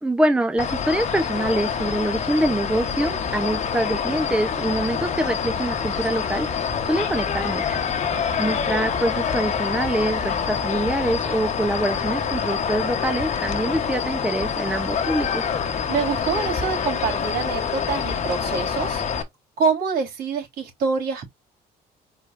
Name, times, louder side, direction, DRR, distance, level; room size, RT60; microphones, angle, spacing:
voice 1, 0.0-7.8 8.4-15.4, right 1 dB, 5° right, 0.6 m, -25 dB
sound 1, 0.6-19.2, left 6 dB, 45° left, 1.0 m, -26 dB
voice 2, 8.1-8.9 15.9-19.2 19.6-21.3, right 5 dB, 65° right, 3.8 m, -26 dB
4.8 x 4.3 x 2.5 m
cardioid pair, 110°, 17 cm